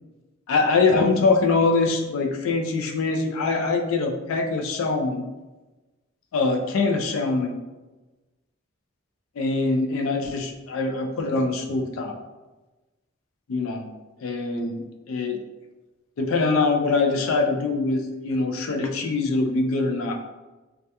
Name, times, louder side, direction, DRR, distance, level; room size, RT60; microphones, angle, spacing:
voice 1, 0.5-5.2 6.3-7.6 9.4-12.1 13.5-13.9 14.2-15.4 16.2-20.3, left 3 dB, 90° left, 3 dB, 0.4 m, -23 dB
2.2 x 2.1 x 2.7 m, 1.1 s
head